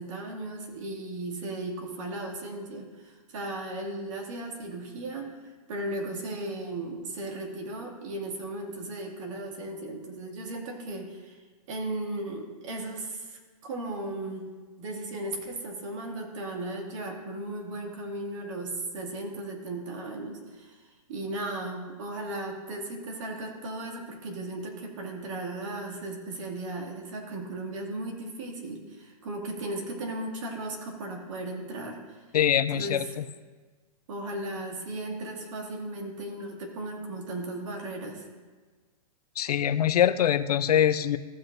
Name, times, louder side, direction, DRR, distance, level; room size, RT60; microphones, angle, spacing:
voice 1, 0.0-11.4 11.7-14.5 14.8-32.3 32.7-33.2 34.1-38.3, right 2 dB, 55° right, 0 dB, 2.2 m, -36 dB
voice 2, 32.3-33.2 39.4-41.2, left 10 dB, 75° left, 14 dB, 0.5 m, -23 dB
15.0 x 7.6 x 2.6 m, 1.4 s
hypercardioid pair, 150°, 20 cm